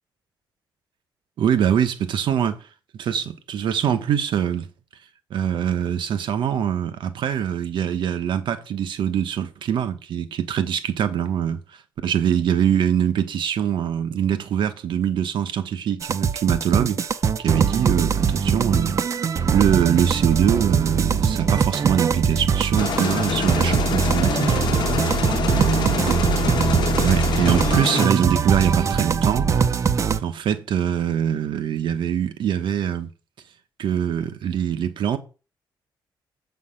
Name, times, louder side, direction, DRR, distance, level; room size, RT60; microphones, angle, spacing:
voice 1, 1.4-2.6 3.0-4.7 5.3-11.6 12.0-17.0 17.4-19.0 19.5-24.5 25.5-26.1 27.0-29.5 30.2-33.1 33.8-35.2, right 9 dB, 80° right, 1.1 m, -23 dB
sound 1, 16.0-30.2, right 6 dB, 40° right, 0.6 m, -22 dB
sound 2, 22.8-28.1, left 7 dB, 65° left, 0.9 m, -26 dB
7.5 x 5.8 x 5.8 m
wide cardioid pair, 155°, 8 cm